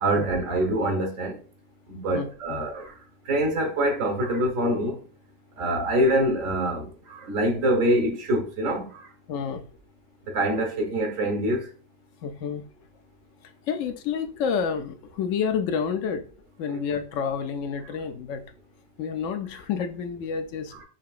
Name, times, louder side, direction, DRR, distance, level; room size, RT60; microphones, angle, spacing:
voice 1, 0.0-1.4 1.9-2.9 3.3-5.0 5.6-9.1 10.3-11.7 16.7-16.8 20.7-20.8, right 1 dB, 85° right, 1.5 m, -25 dB
voice 2, 2.1-2.6 9.3-9.6 12.2-12.6 13.7-16.3 16.6-18.4 19.0-20.8, left 6 dB, 75° left, 0.9 m, -29 dB
6.0 x 2.8 x 2.4 m
omnidirectional pair, 1.3 m